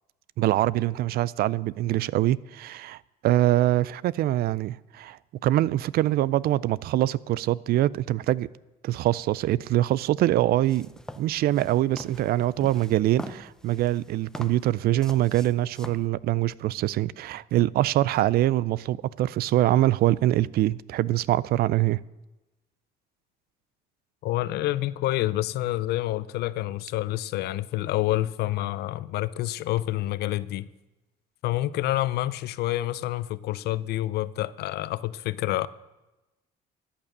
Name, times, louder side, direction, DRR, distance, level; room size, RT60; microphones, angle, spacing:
voice 1, 0.4-8.5 8.8-10.9 11.2-22.0, right 14 dB, 65° right, 0.4 m, -24 dB
sound 1, 10.6-16.1, left 1 dB, 5° left, 0.6 m, -43 dB
voice 2, 24.2-30.7 31.4-35.7, left 15 dB, 75° left, 0.5 m, -28 dB
14.0 x 8.7 x 6.6 m
cardioid pair, 110°, 17 cm